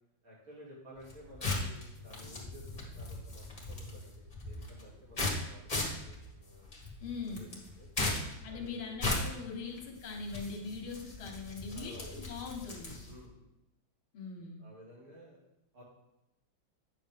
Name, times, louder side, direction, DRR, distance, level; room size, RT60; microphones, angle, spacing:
voice 1, 0.2-7.5 7.8-7.9 8.5-8.9 9.6-9.9 11.7-12.2 13.0-13.4 14.6-15.4 15.7-15.8, equal, 75° right, -6 dB, 3.5 m, -54 dB
sound 1, 1.0-13.2, left 2 dB, 20° left, 1.7 m, -38 dB
voice 2, 7.0-7.6 8.4-13.0 14.1-14.7, left 4 dB, 80° left, 1 dB, 2.2 m, -41 dB
9.5 x 6.4 x 3.6 m, 0.90 s
omnidirectional pair, 2.3 m